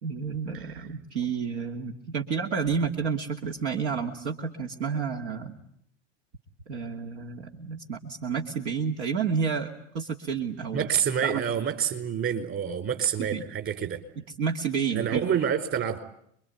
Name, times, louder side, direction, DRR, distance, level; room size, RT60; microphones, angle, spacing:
voice 1, 0.0-5.6 6.7-10.9 11.2-11.4 13.2-13.4 14.4-15.3, right 6 dB, 70° right, 3 dB, 2.7 m, -30 dB
voice 2, 10.7-14.0 14.9-16.0, right 8 dB, 35° right, 8 dB, 4.7 m, -27 dB
27.0 x 23.0 x 9.4 m, 0.70 s
hypercardioid pair, 90°, 37 cm